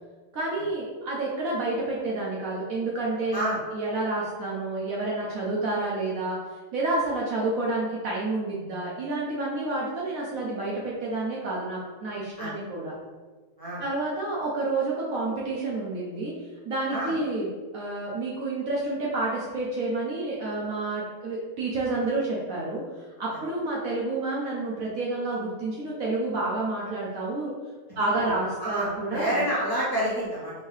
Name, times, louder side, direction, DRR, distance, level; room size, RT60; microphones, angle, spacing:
voice 1, 0.3-3.5 3.7-6.4 6.7-12.9 13.8-16.3 16.6-22.8 23.2-27.5 28.0-29.4, right 2 dB, 65° right, -4 dB, 1.0 m, -29 dB
voice 2, 27.9-28.3 28.6-30.5, right 1 dB, 15° left, -11 dB, 1.3 m, -29 dB
4.5 x 2.7 x 3.2 m, 1.4 s
omnidirectional pair, 1.7 m